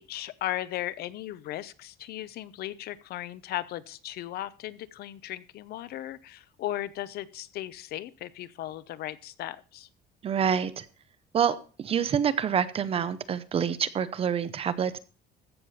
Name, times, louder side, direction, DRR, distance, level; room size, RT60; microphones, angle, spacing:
voice 1, 0.0-9.9, left 13 dB, 55° left, 17 dB, 0.7 m, -36 dB
voice 2, 10.2-10.8 11.3-15.0, right 8 dB, 30° right, 14 dB, 0.7 m, -27 dB
15.0 x 6.9 x 5.6 m, 0.38 s
cardioid pair, 175°, 19 cm